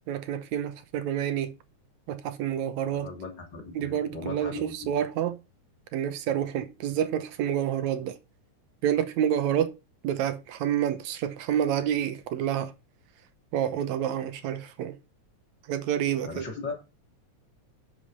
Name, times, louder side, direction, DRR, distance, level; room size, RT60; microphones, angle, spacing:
voice 1, 0.1-1.5 2.1-3.1 3.8-5.4 5.9-8.2 8.8-9.7 10.0-12.7 13.5-15.0 15.7-16.5, right 10 dB, 75° right, 2.2 m, -28 dB
voice 2, 2.9-4.9 16.2-16.9, left 3 dB, 40° left, 3.3 m, -38 dB
8.2 x 7.4 x 5.4 m
omnidirectional pair, 3.3 m